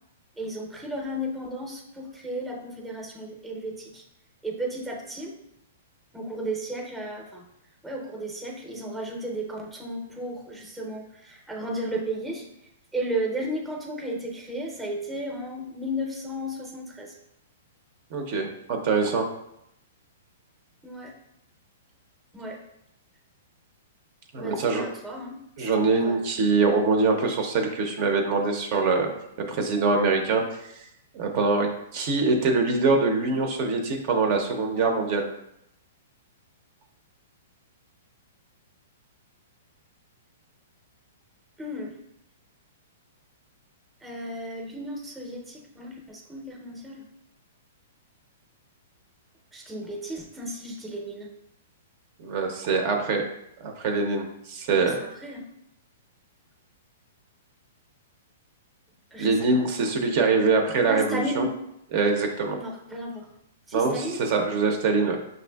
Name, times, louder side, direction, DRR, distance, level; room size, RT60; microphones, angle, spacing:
voice 1, 0.4-4.0 4.4-5.3 6.1-7.5 7.8-12.5 12.9-17.1 20.8-21.1 22.3-22.6 24.3-26.2 41.6-41.9 44.0-47.0 49.5-51.3 54.7-55.4 59.1-59.6 60.8-61.5 62.6-63.3 63.7-64.2, right 1 dB, 5° right, 0 dB, 0.6 m, -34 dB
voice 2, 18.1-19.3 24.3-24.8 25.6-29.1 29.5-30.4 31.1-35.3 52.2-53.3 53.6-55.0 59.2-61.4 61.9-62.6 63.7-65.2, right 4 dB, 45° right, 3 dB, 0.5 m, -24 dB
5.8 x 2.5 x 2.2 m, 0.80 s
hypercardioid pair, 140°, 0 cm